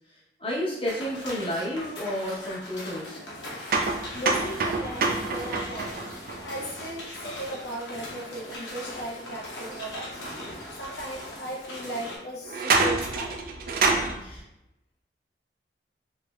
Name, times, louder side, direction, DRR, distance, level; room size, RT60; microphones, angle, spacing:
voice 1, 0.1-3.2 14.2-14.4, equal, 30° left, -5 dB, 0.8 m, -31 dB
sound 1, 0.8-12.2, left 1 dB, 85° left, 0.9 m, -40 dB
sound 2, 3.7-7.5 10.3-10.4 11.2-11.3 12.4-14.1, right 3 dB, 50° right, 0.3 m, -27 dB
voice 2, 4.1-6.0 6.4-10.2 10.8-13.4, right 1 dB, 70° left, -2 dB, 0.6 m, -37 dB
3.2 x 3.0 x 2.3 m, 0.90 s
head